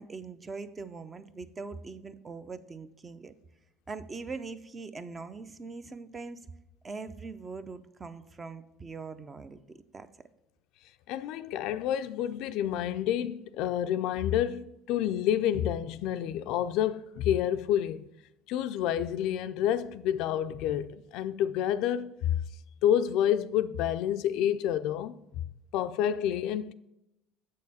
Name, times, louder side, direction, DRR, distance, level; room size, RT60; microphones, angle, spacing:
voice 1, 0.0-3.3 3.9-6.5 6.8-10.1, right 4 dB, 25° right, 0.5 m, -42 dB
voice 2, 11.1-18.1 18.5-22.4 22.8-26.7, left 10 dB, 70° left, 0.4 m, -29 dB
7.4 x 6.5 x 4.1 m
supercardioid pair, 110°, 0 cm